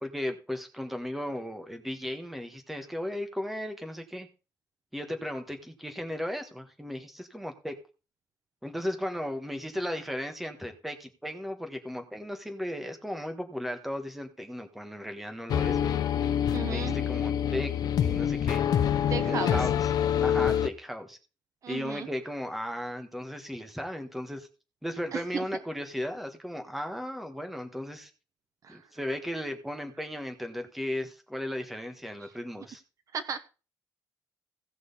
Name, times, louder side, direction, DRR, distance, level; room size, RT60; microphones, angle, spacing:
voice 1, 0.0-4.3 4.9-7.8 8.6-15.9 16.7-18.6 19.3-19.8 20.2-21.2 21.7-24.5 24.8-28.1 28.7-32.8, left 1 dB, ahead, 5 dB, 1.5 m, -36 dB
sound 1, 15.5-20.7, left 9 dB, 65° left, 0.8 m, -26 dB
voice 2, 16.5-17.0 19.1-19.7 21.6-22.1 25.1-25.4 28.6-28.8 32.2-32.3 33.1-33.4, right 7 dB, 50° right, 11 dB, 0.8 m, -35 dB
16.5 x 6.1 x 4.2 m, 0.33 s
cardioid pair, 155°, 7 cm